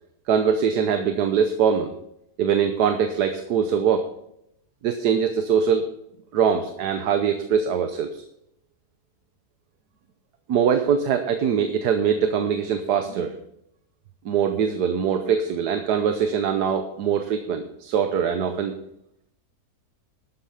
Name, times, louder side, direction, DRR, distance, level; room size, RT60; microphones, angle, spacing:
voice 1, 0.3-1.9 2.4-4.1 4.8-5.9 6.3-8.2 10.5-13.4 14.2-18.7, right 7 dB, 90° right, 7 dB, 1.4 m, -22 dB
12.5 x 8.1 x 5.5 m, 0.78 s
omnidirectional pair, 1.7 m